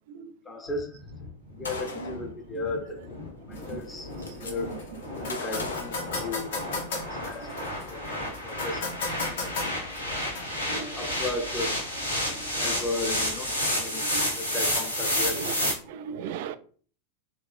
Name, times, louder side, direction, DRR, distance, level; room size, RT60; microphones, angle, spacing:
voice 1, 0.5-1.0 1.5-3.1 3.5-4.1 4.4-4.8 5.1-6.5 6.9-8.9 9.2-9.9 10.7-11.8 12.2-15.4, left 2 dB, 15° left, 0.6 m, -36 dB
sound 1, 0.7-15.7, left 1 dB, 90° left, 1.1 m, -31 dB
Gunshot gunfire, 1.6-2.3 3.4-3.5 3.8-4.5 5.3-6.8, left 4 dB, 70° left, 0.7 m, -37 dB
sound 2, 3.5-13.5, left 3 dB, 55° left, 1.0 m, -38 dB
voice 2, 3.5-3.8 4.4-4.6 5.2-5.3 7.4-7.7 10.7-11.1 12.4-12.5 14.0-14.3 15.3-16.6, right 7 dB, 50° right, 0.3 m, -38 dB
3.1 x 2.7 x 3.4 m
figure-of-eight pair, 90°, 0 cm